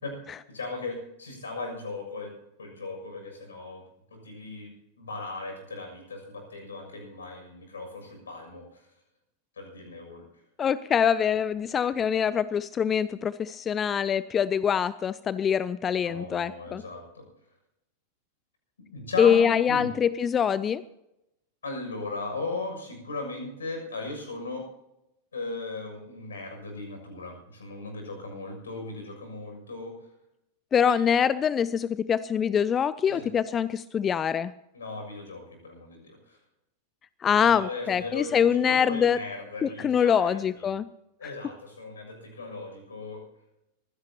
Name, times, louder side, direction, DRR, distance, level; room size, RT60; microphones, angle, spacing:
voice 1, 0.5-2.3 2.6-3.8 4.1-4.7 5.0-8.9 9.6-10.2 16.0-17.2 18.9-19.9 21.6-24.6 25.3-29.9 30.8-31.0 33.1-33.3 34.7-36.4 37.4-40.7 41.2-43.2, left 3 dB, 70° left, 3 dB, 6.7 m, -37 dB
voice 2, 10.6-16.8 19.2-20.8 30.7-34.5 37.2-39.2 39.6-40.9, left 8 dB, 25° left, 17 dB, 0.5 m, -24 dB
24.0 x 16.0 x 2.9 m, 0.87 s
figure-of-eight pair, 90°, 0 cm